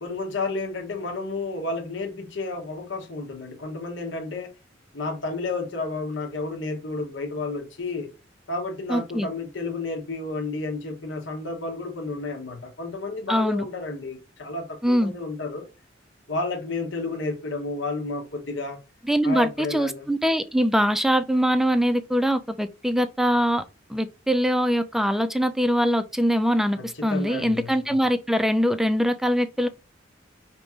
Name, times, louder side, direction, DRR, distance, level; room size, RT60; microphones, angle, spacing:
voice 1, 0.0-4.5 4.9-8.1 8.5-15.7 16.3-18.8 19.2-20.1 26.8-28.0, left 3 dB, 75° left, 1.0 m, -31 dB
voice 2, 8.9-9.3 13.3-13.7 14.8-15.1 19.1-23.6 23.9-29.7, equal, ahead, 0.3 m, -23 dB
5.1 x 2.9 x 3.5 m
head